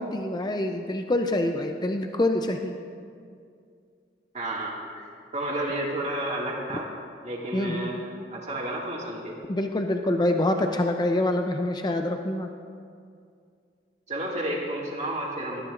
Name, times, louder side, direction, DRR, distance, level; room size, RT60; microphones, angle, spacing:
voice 1, 0.0-2.7 7.5-7.9 9.5-12.5, left 1 dB, 25° left, 5 dB, 0.5 m, -26 dB
voice 2, 4.3-6.9 7.2-9.4 14.1-15.6, right 1 dB, 40° right, -3 dB, 2.0 m, -31 dB
18.5 x 12.5 x 2.5 m, 2.3 s
head